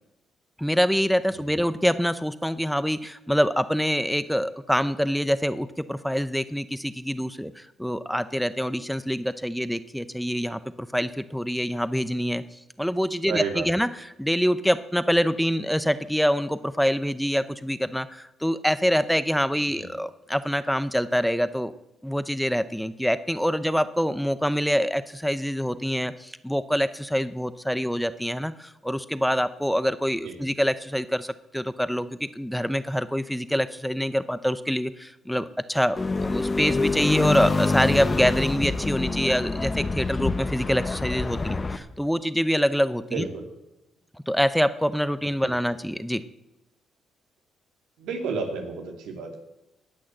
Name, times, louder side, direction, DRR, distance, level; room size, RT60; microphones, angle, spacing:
voice 1, 0.6-12.4 12.8-13.9 14.2-21.7 22.0-43.2 44.3-46.2, equal, ahead, 13 dB, 0.7 m, -25 dB
voice 2, 13.3-13.7 19.7-19.9 30.2-30.4 43.1-43.5 45.4-45.6 48.0-49.4, right 5 dB, 90° right, 3 dB, 2.6 m, -32 dB
sound 1, 36.0-41.8, left 3 dB, 30° left, 1.0 m, -26 dB
18.5 x 6.3 x 7.7 m, 0.94 s
cardioid pair, 90°, 0 cm